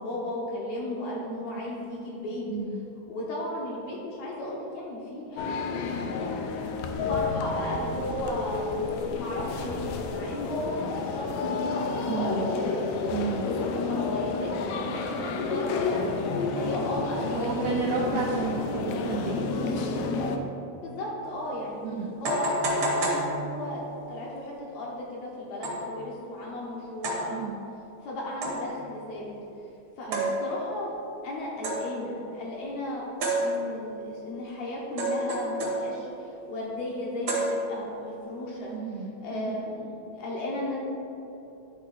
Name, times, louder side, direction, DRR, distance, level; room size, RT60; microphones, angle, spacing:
voice 1, 0.0-2.4 3.1-8.7 9.1-13.0 13.4-16.3 16.5-17.7 18.1-18.6 20.7-21.8 22.2-23.8 24.1-27.5 28.0-29.3 30.0-31.0 31.2-33.1 33.4-38.7 39.2-40.8, left 1 dB, 70° left, -4 dB, 1.8 m, -35 dB
sound 1, 5.4-20.4, left 4 dB, 85° left, 1.6 m, -30 dB
voice 2, 12.1-12.5 13.1-13.5 17.3-19.7 21.8-22.1 27.3-27.6 30.1-30.3 38.7-39.6, right 5 dB, 80° right, -2 dB, 1.6 m, -32 dB
sound 2, 21.3-21.4 22.2-23.9 25.6-26.0 27.0-27.4 28.4-28.8 30.1-30.7 31.6-32.1 33.2-34.0 35.0-36.2 37.3-38.0, right 1 dB, 60° right, 1.3 m, -30 dB
10.0 x 3.7 x 4.1 m, 2.9 s
omnidirectional pair, 3.8 m